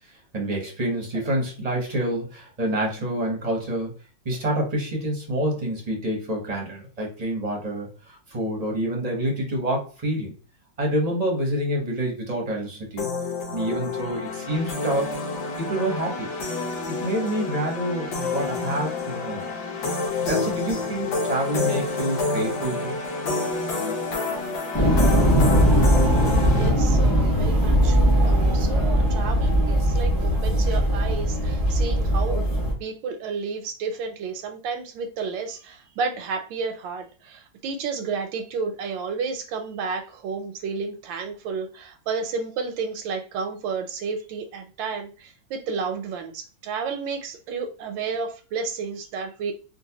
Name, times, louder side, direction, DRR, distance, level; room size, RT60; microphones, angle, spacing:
voice 1, 0.3-3.9 4.2-10.3 10.8-13.1 13.5-15.1 15.6-16.3 17.0-19.4 20.2-23.0, right 1 dB, 35° right, -1 dB, 0.6 m, -27 dB
sound 1, 13.0-26.7, left 3 dB, 85° left, 1.7 m, -29 dB
sound 2, 24.7-32.7, equal, 20° left, 0.6 m, -20 dB
voice 2, 26.2-32.4 32.8-49.5, right 5 dB, 85° right, 3 dB, 1.3 m, -31 dB
3.8 x 2.4 x 2.8 m, 0.35 s
omnidirectional pair, 2.0 m